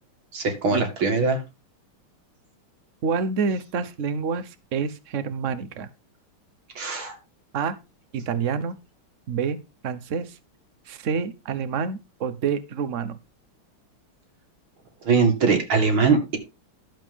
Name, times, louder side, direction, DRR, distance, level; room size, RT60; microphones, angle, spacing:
voice 1, 0.3-1.4 6.8-7.2 15.0-16.4, right 4 dB, 70° right, 4 dB, 3.0 m, -21 dB
voice 2, 3.0-5.9 7.5-7.7 8.1-8.8 9.3-9.6 9.8-10.4 10.9-13.2, right 6 dB, 45° right, 15 dB, 1.0 m, -27 dB
12.0 x 7.5 x 3.5 m, 0.26 s
omnidirectional pair, 2.4 m